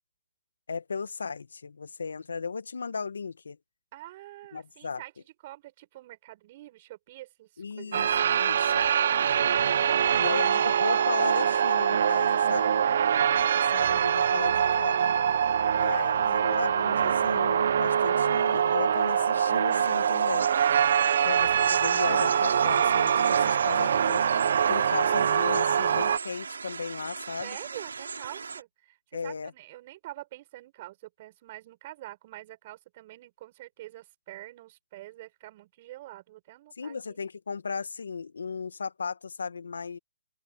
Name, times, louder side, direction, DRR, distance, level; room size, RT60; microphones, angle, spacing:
voice 1, 0.7-3.6 4.5-5.0 7.6-8.1 8.4-8.8 10.2-12.8 13.5-15.1 15.7-20.5 21.2-27.5 29.1-29.5 36.8-40.0, left 5 dB, 75° left, 1.8 m, -36 dB
voice 2, 3.9-5.1 5.4-10.5 12.8-14.2 27.4-37.2, right 16 dB, 35° right, 7.3 m, -46 dB
sound 1, 7.9-26.2, right 8 dB, 55° right, 0.8 m, -24 dB
sound 2, 19.7-28.6, right 5 dB, 75° right, 5.4 m, -38 dB
open air
hypercardioid pair, 150°, 0 cm